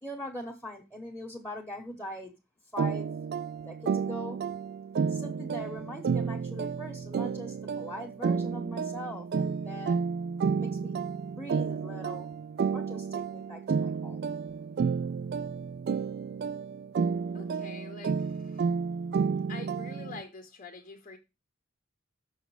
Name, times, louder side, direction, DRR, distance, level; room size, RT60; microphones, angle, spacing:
voice 1, 0.0-2.3 2.7-3.1 3.6-4.4 5.1-10.0 10.6-10.9 11.2-12.3 12.7-14.3, equal, 10° left, 1.1 m, -41 dB
sound 1, 2.8-20.2, right 5 dB, 50° right, 0.3 m, -31 dB
voice 2, 17.3-18.6 19.5-21.2, left 4 dB, 35° left, 1.0 m, -45 dB
6.5 x 6.1 x 4.7 m
head